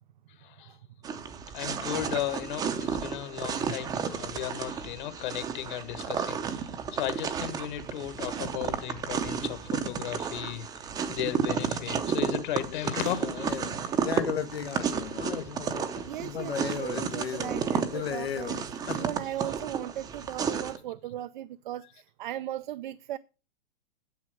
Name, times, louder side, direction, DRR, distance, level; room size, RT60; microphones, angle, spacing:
sound 1, 1.0-20.8, right 7 dB, 15° right, 0.6 m, -32 dB
voice 1, 1.5-6.4 6.9-10.7 11.1-13.6, left 12 dB, 50° left, 1.6 m, -35 dB
sound 2, 12.5-19.1, left 7 dB, 90° left, 1.3 m, -36 dB
voice 2, 16.0-23.2, right 13 dB, 55° right, 0.5 m, -37 dB
9.2 x 7.2 x 4.8 m
hypercardioid pair, 140°, 30 cm